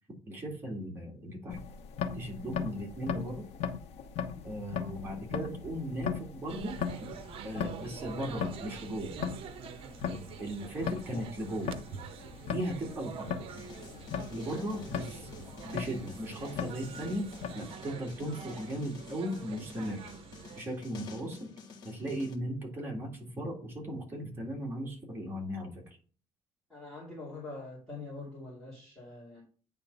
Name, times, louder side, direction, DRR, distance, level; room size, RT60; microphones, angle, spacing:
voice 1, 0.3-1.6 2.1-3.5 4.4-6.8 7.4-9.2 10.1-11.7 12.4-13.3 14.3-15.3 15.6-17.3 17.5-20.1 20.5-21.5 21.8-23.1 23.4-25.7, equal, 20° right, -1 dB, 2.1 m, -37 dB
sound 1, 1.5-17.6, left 7 dB, 85° left, 1.0 m, -39 dB
sound 2, 6.5-20.6, right 8 dB, 60° right, 0.7 m, -46 dB
sound 3, 13.5-22.4, left 5 dB, 40° left, 1.4 m, -50 dB
voice 2, 26.7-29.4, left 3 dB, 5° left, -8 dB, 2.6 m, -44 dB
9.0 x 3.6 x 5.3 m, 0.40 s
cardioid pair, 165°, 11 cm